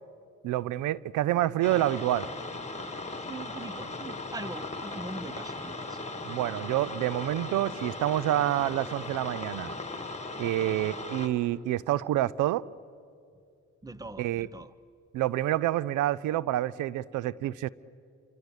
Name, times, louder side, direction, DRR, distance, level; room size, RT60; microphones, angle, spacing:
voice 1, 0.4-2.3 6.2-9.7 10.4-12.6 14.2-14.5 15.1-17.7, right 14 dB, 85° right, 21 dB, 0.6 m, -28 dB
sound 1, 1.6-11.3, left 2 dB, 20° left, 2.4 m, -38 dB
voice 2, 3.2-6.0 13.8-14.7, right 2 dB, 10° right, 16 dB, 0.9 m, -41 dB
28.0 x 25.0 x 8.1 m, 2.4 s
cardioid pair, 90°, 30 cm